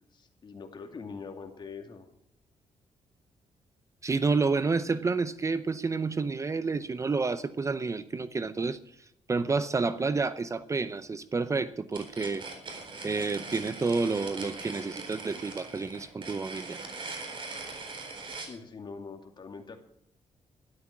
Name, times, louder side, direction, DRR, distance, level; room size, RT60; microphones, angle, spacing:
voice 1, 0.1-2.1 18.4-19.8, left 5 dB, 40° left, 5 dB, 2.7 m, -43 dB
voice 2, 4.0-8.8 9.3-12.4 13.0-16.8, right 4 dB, 25° right, 14 dB, 0.7 m, -29 dB
sound 1, 11.9-18.5, right 3 dB, 45° right, 4.1 m, -41 dB
13.0 x 12.0 x 6.0 m, 0.72 s
cardioid pair, 125°, 11 cm